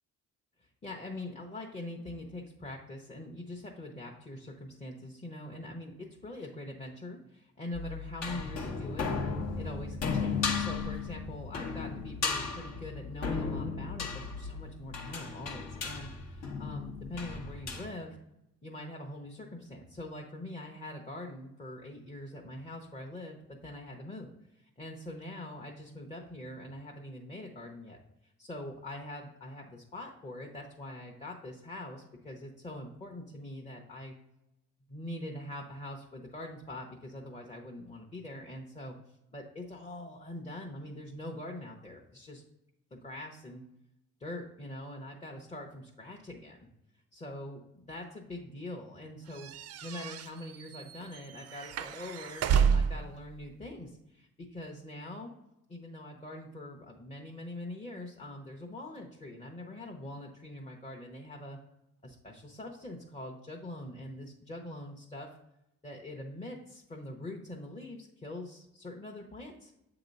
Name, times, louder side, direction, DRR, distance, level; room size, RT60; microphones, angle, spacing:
voice 1, 0.6-9.1 9.6-18.2 18.6-24.3 24.5-28.0 28.4-34.1 34.9-38.9 39.3-42.4 42.9-43.6 44.2-46.7 47.1-49.5 49.8-55.3 55.7-61.6 62.0-65.3 65.8-69.7, left 1 dB, 20° left, 0 dB, 0.8 m, -43 dB
sound 1, 7.7-17.9, left 5 dB, 60° left, 1.0 m, -35 dB
sound 2, 49.3-53.1, right 7 dB, 55° right, 0.5 m, -30 dB
7.7 x 2.9 x 5.2 m, 0.88 s
cardioid pair, 90°, 30 cm